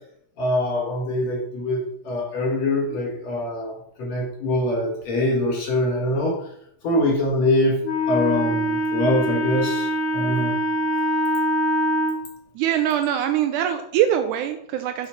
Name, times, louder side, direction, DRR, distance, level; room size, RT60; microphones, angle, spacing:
voice 1, 0.4-3.7 4.0-6.4 6.8-7.8 8.1-10.5, left 1 dB, 65° left, -2 dB, 2.7 m, -23 dB
Wind instrument woodwind instrument, 7.8-12.2, equal, 80° left, 1.0 m, -23 dB
voice 2, 12.6-15.1, right 10 dB, 80° right, 7 dB, 2.1 m, -23 dB
5.7 x 5.5 x 5.8 m, 0.71 s
omnidirectional pair, 3.6 m